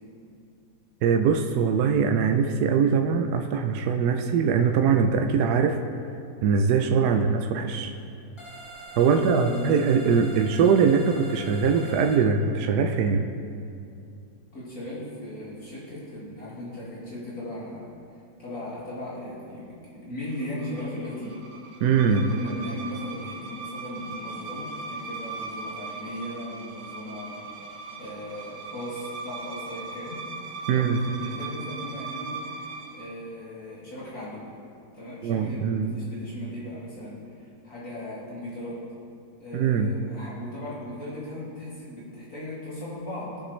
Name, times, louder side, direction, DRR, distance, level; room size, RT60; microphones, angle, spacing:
voice 1, 1.0-5.8 6.4-7.9 9.0-13.3 21.8-22.3 30.7-31.0 35.2-35.9 39.5-39.9, right 6 dB, 70° right, 5 dB, 1.1 m, -22 dB
sound 1, 8.4-12.2, right 1 dB, 15° left, 1.7 m, -43 dB
voice 2, 9.1-9.7 14.5-17.9 18.4-21.4 22.0-30.3 30.7-34.5 34.9-38.8 39.4-43.4, left 1 dB, 50° left, -9 dB, 3.0 m, -37 dB
sound 2, 20.4-33.1, right 4 dB, 85° right, 1.7 m, -39 dB
19.5 x 6.9 x 3.2 m, 2.5 s
omnidirectional pair, 2.0 m